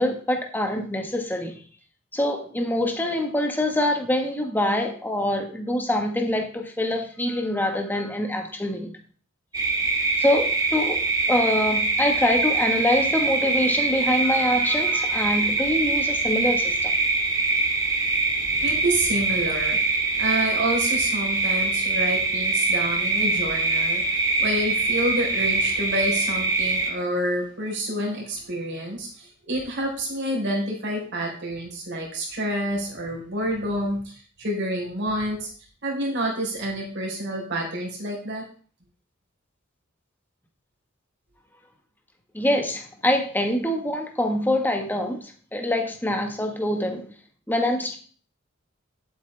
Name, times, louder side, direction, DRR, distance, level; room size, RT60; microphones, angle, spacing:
voice 1, 0.0-1.6 2.1-8.9 10.2-16.9 42.3-47.1 47.5-48.0, left 1 dB, 10° left, 4 dB, 1.3 m, -25 dB
sound 1, 9.5-26.9, right 3 dB, 20° right, 1.8 m, -24 dB
voice 2, 18.6-35.5 35.8-38.4, right 1 dB, 60° right, 0 dB, 3.9 m, -28 dB
11.5 x 8.4 x 3.3 m, 0.42 s
head